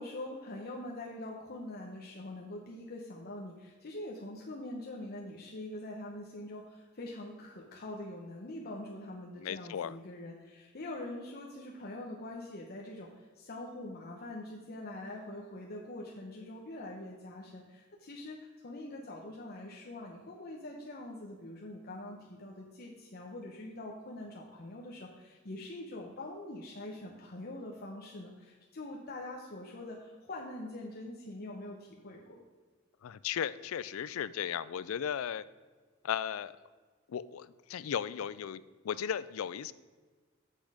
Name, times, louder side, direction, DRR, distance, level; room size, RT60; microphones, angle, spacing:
voice 1, 0.0-32.4, left 1 dB, 50° left, -1 dB, 0.9 m, -44 dB
voice 2, 9.4-9.9 33.0-35.4 36.0-36.5 37.1-39.7, left 8 dB, 90° left, 17 dB, 0.4 m, -36 dB
8.4 x 6.2 x 4.9 m, 1.4 s
head